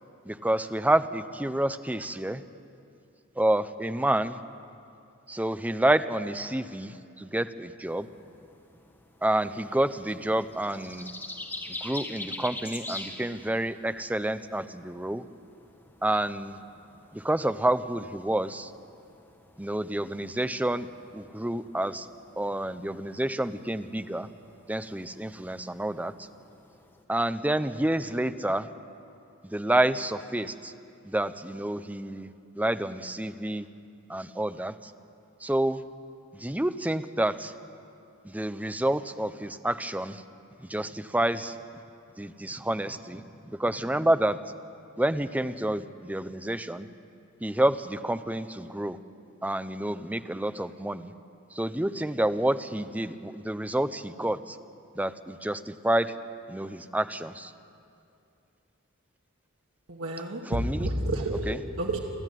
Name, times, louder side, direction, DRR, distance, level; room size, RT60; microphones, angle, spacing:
voice 1, 0.2-2.4 3.4-4.4 5.3-8.1 9.2-11.1 11.7-15.2 16.0-16.6 17.1-18.7 19.6-20.9 21.1-22.1 22.4-24.3 24.7-26.3 27.1-28.7 29.4-30.7 31.0-32.3 32.5-33.7 34.1-34.9 35.4-35.8 36.3-37.5 38.2-40.2 40.7-41.6 42.2-44.4 45.0-46.9 47.4-49.0 49.4-51.1 51.5-54.6 54.9-56.1 56.5-57.5 60.5-60.9 61.5-61.6, right 1 dB, 5° right, 12 dB, 0.6 m, -28 dB
sound 1, 7.9-27.0, left 2 dB, 10° left, 1.4 m, -46 dB
voice 2, 59.9-62.0, right 1 dB, 85° right, 0 dB, 1.9 m, -30 dB
29.0 x 12.0 x 9.2 m, 2.5 s
head